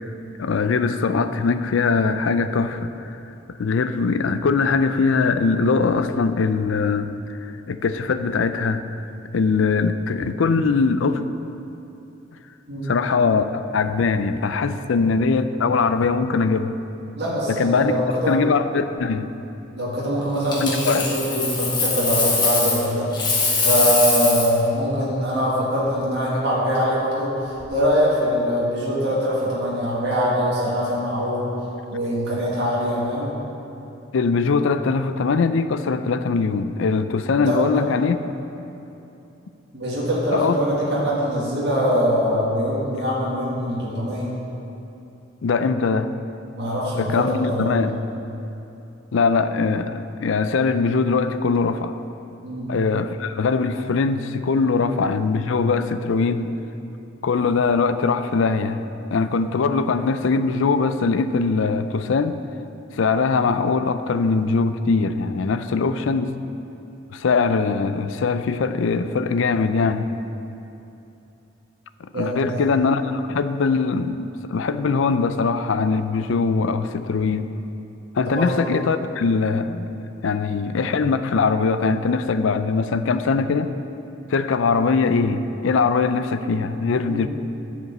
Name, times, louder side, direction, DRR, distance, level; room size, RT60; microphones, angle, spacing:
voice 1, 0.4-3.1 3.6-8.8 9.3-11.2 12.9-16.8 17.5-17.9 18.3-19.3 20.6-21.1 34.1-38.2 40.3-40.6 45.4-46.1 47.0-47.9 49.1-52.0 52.7-56.5 57.2-58.8 59.1-62.4 62.9-66.3 67.1-70.1 72.0-77.5 78.1-79.9 80.2-83.7 84.3-87.3, left 4 dB, 70° left, 11 dB, 0.4 m, -21 dB
voice 2, 17.2-18.4 19.7-23.1 23.6-31.5 31.9-33.3 37.5-37.8 39.7-44.3 46.6-47.9 52.4-52.7 58.2-58.3 72.1-72.6 78.3-78.5 87.1-87.2, equal, 55° right, -7 dB, 2.0 m, -23 dB
Coin (dropping), 20.5-22.9 23.1-24.6 27.4-27.6, left 3 dB, 20° left, 1.2 m, -22 dB
11.0 x 5.1 x 6.6 m, 2.8 s
head